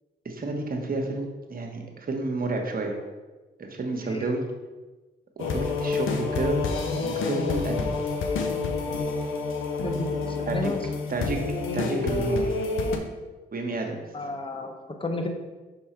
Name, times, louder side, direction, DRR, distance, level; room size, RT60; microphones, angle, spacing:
voice 1, 0.2-3.0 3.6-4.4 5.4-6.6 7.0-8.1 10.5-10.7 11.1-11.4 11.7-12.5 13.5-14.0, right 3 dB, 45° right, 2 dB, 1.2 m, -30 dB
sound 1, 5.4-13.0, left 3 dB, 75° left, 0.7 m, -28 dB
voice 2, 9.8-10.8 14.1-14.7 15.0-15.3, left 2 dB, 25° left, 4 dB, 1.0 m, -32 dB
5.9 x 3.6 x 4.5 m, 1.2 s
supercardioid pair, 50°, 20 cm